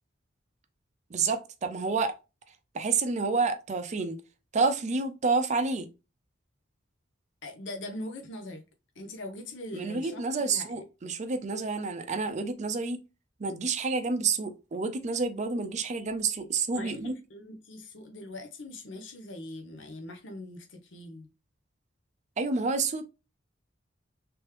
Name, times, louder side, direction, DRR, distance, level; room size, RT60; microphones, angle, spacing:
voice 1, 1.1-2.2 2.7-4.2 4.5-5.9 9.7-13.0 13.4-17.1 22.4-23.0, right 4 dB, 40° right, 0.4 m, -29 dB
voice 2, 7.4-8.6 9.0-10.8 16.7-21.3, left 1 dB, 70° left, 0.7 m, -41 dB
3.4 x 3.0 x 3.2 m
head